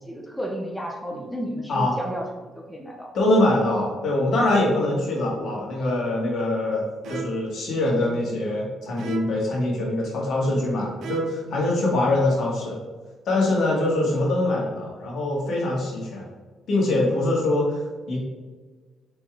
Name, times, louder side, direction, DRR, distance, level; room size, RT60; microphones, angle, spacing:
voice 1, 0.0-3.1, equal, 5° left, 0 dB, 0.6 m, -32 dB
voice 2, 3.1-6.8 7.1-12.8 13.2-16.2 16.7-17.8 18.1-18.2, left 2 dB, 65° left, -3 dB, 1.5 m, -23 dB
sound 1, 5.4-5.8 7.0-7.6 9.0-9.6 11.0-11.6, right 5 dB, 70° right, 0.4 m, -35 dB
4.5 x 4.0 x 2.4 m, 1.4 s
cardioid pair, 90°, 0 cm